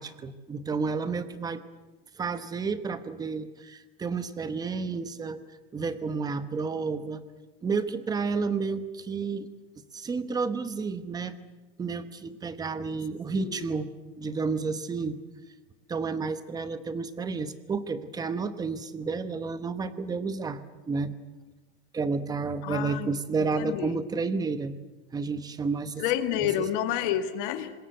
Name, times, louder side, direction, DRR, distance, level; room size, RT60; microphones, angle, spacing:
voice 1, 0.0-1.6 2.2-5.4 5.7-7.2 7.6-9.5 9.9-11.3 11.8-13.9 14.2-15.2 15.9-20.6 20.9-21.1 21.9-24.8 25.1-26.0 26.4-26.7, right 4 dB, 15° right, 1.0 m, -31 dB
voice 2, 13.4-13.7 22.6-23.1 23.5-24.0 26.0-27.7, left 11 dB, 60° left, 1.9 m, -29 dB
25.5 x 20.5 x 8.1 m
supercardioid pair, 165°, 29 cm